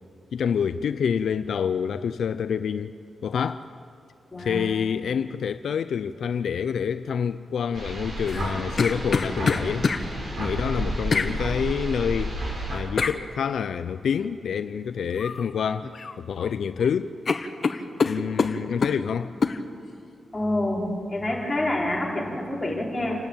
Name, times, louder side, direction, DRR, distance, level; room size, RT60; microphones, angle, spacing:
voice 1, 0.3-2.9 3.2-3.6 4.4-9.9 10.4-12.4 12.7-15.9 16.2-17.1 18.0-19.3, left 7 dB, 75° left, 11 dB, 0.5 m, -27 dB
sound 1, 7.7-12.8, right 1 dB, 50° right, 6.5 m, -31 dB
sound 2, 8.3-10.0 11.1-11.3 13.0-13.2 15.2-15.5 15.8-16.5 16.8-16.9 17.3-19.0 19.4-19.6, left 4 dB, 45° left, 1.1 m, -25 dB
voice 2, 20.3-23.2, left 1 dB, 15° left, -4 dB, 4.9 m, -27 dB
28.0 x 12.5 x 9.0 m, 2.5 s
wide cardioid pair, 125°, 0 cm